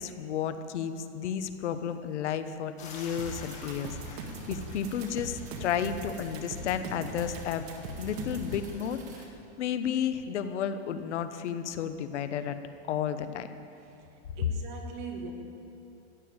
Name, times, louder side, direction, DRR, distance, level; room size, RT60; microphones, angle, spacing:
voice 1, 0.0-7.7 8.0-9.3 9.6-12.6 12.9-13.5, left 8 dB, 85° left, 10 dB, 1.1 m, -32 dB
sound 1, 2.8-9.0, left 4 dB, 20° left, 1.7 m, -49 dB
sound 2, 3.2-8.5, right 3 dB, 65° right, 2.2 m, -40 dB
sound 3, 3.3-9.3, right 5 dB, 20° right, 1.5 m, -54 dB
voice 2, 13.8-15.3, right 6 dB, 45° right, 2 dB, 2.1 m, -42 dB
14.5 x 9.3 x 8.8 m, 2.8 s
supercardioid pair, 175°, 34 cm